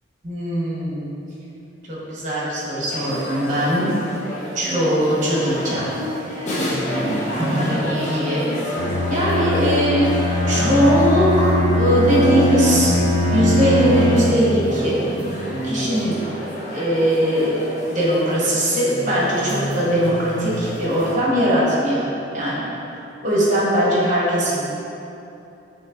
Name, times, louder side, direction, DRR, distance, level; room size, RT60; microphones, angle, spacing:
voice 1, 0.2-1.1 1.9-3.9 4.5-5.9 7.3-8.5 9.1-10.1 10.5-13.0 13.3-15.0 15.6-16.2 16.7-17.6 17.9-22.0 22.3-22.6 22.9-24.6, equal, 45° right, -7 dB, 1.2 m, -20 dB
sound 1, 2.9-21.1, equal, 40° left, 0.8 m, -28 dB
Bowed string instrument, 8.7-14.4, left 1 dB, 70° left, 0.8 m, -21 dB
6.3 x 3.1 x 2.5 m, 2.8 s
head